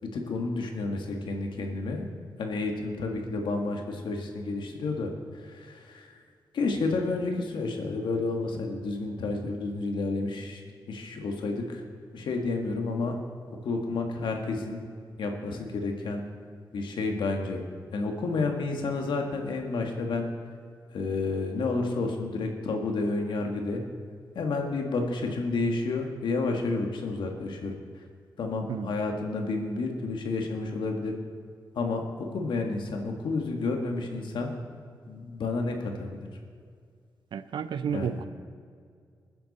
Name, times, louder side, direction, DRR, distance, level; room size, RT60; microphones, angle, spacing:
voice 1, 0.0-2.0 2.4-6.2 6.5-10.6 10.9-11.8 12.1-13.2 13.5-14.8 15.2-16.2 16.7-17.6 17.9-20.3 20.9-23.8 24.4-28.0 28.4-31.1 31.8-34.5 35.1-36.2 37.9-38.2, left 3 dB, 85° left, 3 dB, 1.9 m, -30 dB
voice 2, 37.3-38.3, right 7 dB, 80° right, 13 dB, 0.7 m, -31 dB
20.5 x 10.5 x 4.3 m, 2.2 s
cardioid pair, 75°, 8 cm